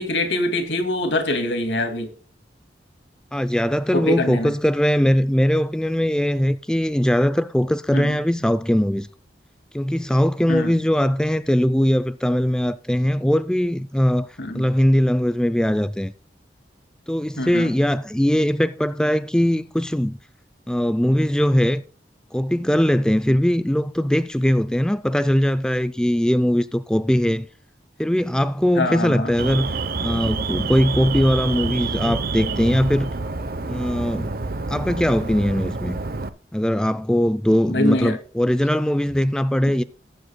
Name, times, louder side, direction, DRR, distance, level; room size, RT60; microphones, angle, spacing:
voice 1, 0.0-2.1 3.9-4.5 7.9-8.2 10.5-10.7 14.4-14.7 17.4-17.7 28.8-29.3 37.7-38.2, left 1 dB, 90° left, 2.2 m, -24 dB
voice 2, 3.3-9.1 9.7-14.3 14.5-16.1 17.1-20.2 20.7-21.8 22.3-27.5 28.0-29.7 30.0-33.1 33.7-34.3 34.7-36.0 36.5-39.8, equal, 5° left, 0.4 m, -20 dB
Alarm, 29.4-36.3, right 3 dB, 55° right, 0.7 m, -27 dB
19.0 x 7.8 x 2.2 m
head